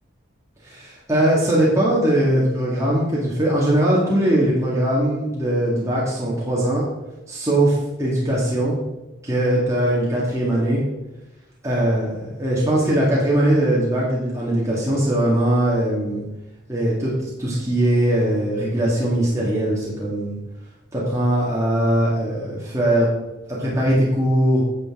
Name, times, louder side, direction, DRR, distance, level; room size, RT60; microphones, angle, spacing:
voice 1, 0.6-6.8 7.3-8.8 9.2-10.8 11.6-16.2 16.7-17.1 17.4-20.4 20.9-23.1 23.5-24.6, right 1 dB, 15° right, -6 dB, 2.1 m, -20 dB
9.8 x 6.8 x 3.8 m, 1.0 s
head